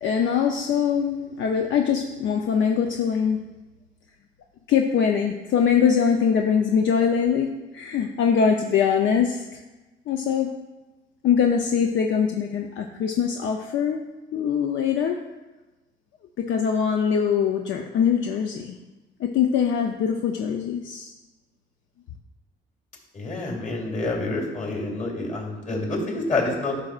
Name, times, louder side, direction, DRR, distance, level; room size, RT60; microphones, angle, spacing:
voice 1, 0.0-3.4 4.7-9.6 10.1-10.5 11.2-14.0 14.3-15.2 16.4-18.8 19.2-21.1, left 7 dB, 70° left, 3 dB, 0.6 m, -22 dB
voice 2, 23.1-26.8, left 2 dB, 40° left, -1 dB, 2.8 m, -27 dB
12.0 x 6.3 x 2.4 m, 1.1 s
cardioid pair, 90°, 20 cm